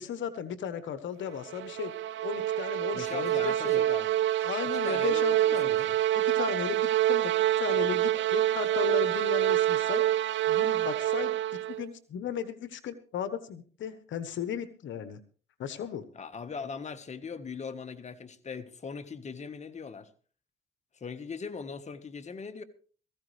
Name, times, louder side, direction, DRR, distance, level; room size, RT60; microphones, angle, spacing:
voice 1, 0.0-1.9 2.2-3.8 4.4-5.9 6.1-10.0 10.5-15.2 15.6-16.1, left 8 dB, 70° left, 11 dB, 1.2 m, -36 dB
sound 1, 1.3-11.9, right 13 dB, 70° right, 0.7 m, -27 dB
voice 2, 2.9-4.1 4.8-5.9 16.1-20.1 20.9-22.6, left 5 dB, 35° left, 9 dB, 1.5 m, -40 dB
18.5 x 15.5 x 3.4 m, 0.41 s
cardioid pair, 90°, 20 cm